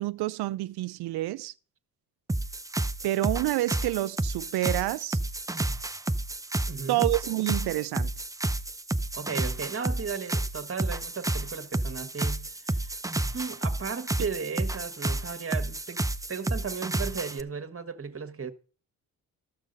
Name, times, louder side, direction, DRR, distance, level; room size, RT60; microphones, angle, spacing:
voice 1, 0.0-1.5 3.0-5.2 6.9-8.1, right 17 dB, 70° right, 0.5 m, -28 dB
sound 1, 2.3-17.4, right 2 dB, 10° right, 0.6 m, -31 dB
voice 2, 6.7-7.1 9.1-12.9 13.3-16.0 16.3-18.5, right 6 dB, 35° right, 1.5 m, -35 dB
14.0 x 6.3 x 5.3 m
supercardioid pair, 60°, 40 cm